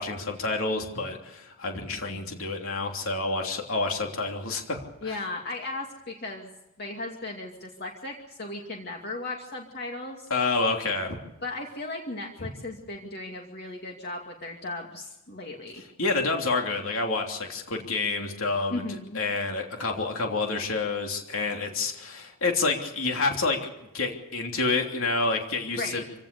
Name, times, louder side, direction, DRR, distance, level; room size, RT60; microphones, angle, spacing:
voice 1, 0.0-5.2 10.3-11.2 12.4-12.5 16.0-23.7 23.9-26.0, left 3 dB, 65° left, 2 dB, 3.1 m, -28 dB
voice 2, 5.0-6.5 6.8-10.3 11.4-15.8 18.7-19.2 25.7-26.0, left 2 dB, 45° left, 1 dB, 2.4 m, -36 dB
25.5 x 17.5 x 6.8 m, 0.94 s
head